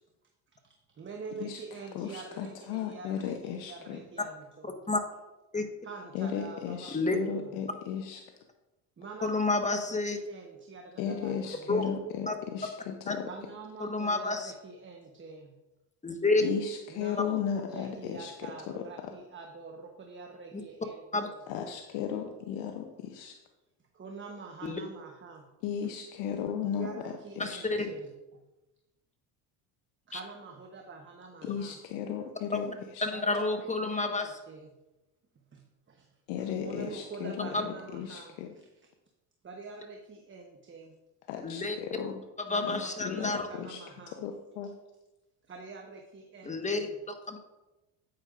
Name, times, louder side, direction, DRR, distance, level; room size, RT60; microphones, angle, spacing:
voice 1, 0.6-4.7 5.8-7.6 9.0-11.7 13.3-15.6 16.9-21.4 23.9-25.5 26.6-28.1 30.1-31.8 33.1-34.7 35.3-36.1 36.4-38.7 39.4-40.9 42.5-44.2 45.4-46.9, right 4 dB, 25° right, 3 dB, 1.1 m, -46 dB
voice 2, 1.9-4.0 6.1-8.2 11.0-13.3 16.4-18.9 21.5-23.3 25.6-27.9 31.4-33.1 36.3-38.5 41.3-42.2 42.6-43.8 44.2-44.8, left 8 dB, 75° left, 4 dB, 0.9 m, -36 dB
voice 3, 4.6-5.0 5.5-5.6 6.9-7.2 9.2-10.2 11.7-11.8 12.3-12.4 13.1-13.2 13.8-14.5 16.0-16.4 21.1-21.3 24.6-24.8 27.4-27.8 30.1-30.2 33.0-34.3 37.5-37.6 41.4-41.8 42.5-43.5 46.4-46.9 47.3-47.4, left 3 dB, 15° left, 5 dB, 1.3 m, -29 dB
9.0 x 8.8 x 2.5 m, 1.0 s
supercardioid pair, 80°, 46 cm